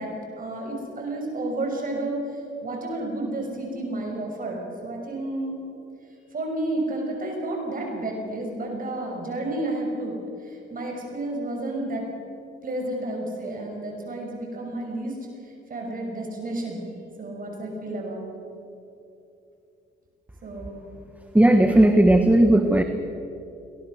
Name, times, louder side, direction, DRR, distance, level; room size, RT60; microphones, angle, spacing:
voice 1, 0.0-5.6 6.3-12.0 12.6-15.2 15.4-16.8 17.2-18.3 20.4-20.8, right 1 dB, 45° right, 1 dB, 5.9 m, -31 dB
voice 2, 21.3-22.8, right 1 dB, 5° right, 7 dB, 1.3 m, -16 dB
23.0 x 18.0 x 6.5 m, 2.7 s
cardioid pair, 90°, 20 cm